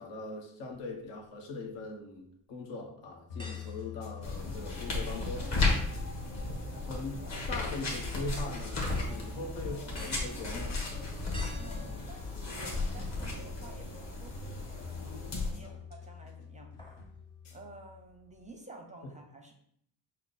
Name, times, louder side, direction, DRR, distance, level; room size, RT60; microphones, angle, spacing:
voice 1, 0.0-5.5 6.8-7.1 7.5-10.8 15.6-15.8, left 3 dB, 75° left, 0 dB, 1.2 m, -41 dB
sound 1, 1.0-1.7 2.2-2.3 3.4-5.1 5.4-13.3 13.7-13.8 15.3-15.8 16.1-16.3 16.6-17.2 17.5-17.6, equal, 10° left, 0.8 m, -54 dB
sound 2, 3.3-18.5, left 4 dB, 60° left, 1.0 m, -47 dB
sound 3, 4.2-15.5, left 3 dB, 40° left, 1.3 m, -35 dB
voice 2, 11.6-14.7 15.0-16.7 17.5-19.5, right 2 dB, 15° right, 3 dB, 0.5 m, -52 dB
6.0 x 2.2 x 4.0 m, 0.67 s
cardioid pair, 135°, 43 cm